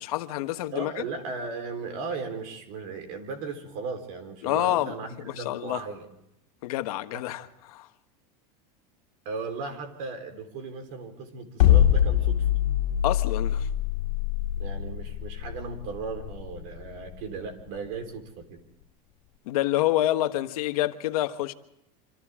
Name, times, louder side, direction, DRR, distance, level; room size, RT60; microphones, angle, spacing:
voice 1, 0.1-1.0 4.4-4.9 5.2-5.8 6.6-7.9 13.0-13.7 19.5-21.5, left 15 dB, 70° left, 1.4 m, -27 dB
voice 2, 0.7-6.1 7.1-7.2 9.2-12.5 14.6-18.6, right 4 dB, 45° right, 4.1 m, -36 dB
sound 1, 11.6-17.8, left 11 dB, 90° left, 2.1 m, -23 dB
27.5 x 26.0 x 3.7 m
supercardioid pair, 175°, 20 cm